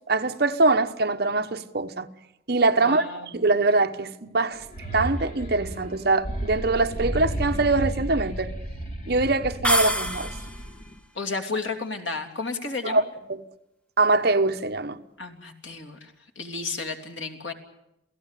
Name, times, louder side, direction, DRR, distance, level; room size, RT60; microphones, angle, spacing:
voice 1, 0.0-2.1 2.5-3.1 3.3-4.6 4.9-8.5 9.1-10.3 12.8-13.0 14.0-15.0, right 3 dB, 55° right, 1.0 m, -23 dB
voice 2, 2.8-3.3 11.1-13.0 15.2-17.5, left 3 dB, 80° left, 3.0 m, -32 dB
sound 1, 4.6-10.9, right 1 dB, 45° left, 2.0 m, -33 dB
sound 2, 9.6-10.7, equal, 5° left, 1.1 m, -26 dB
28.0 x 17.5 x 8.4 m
head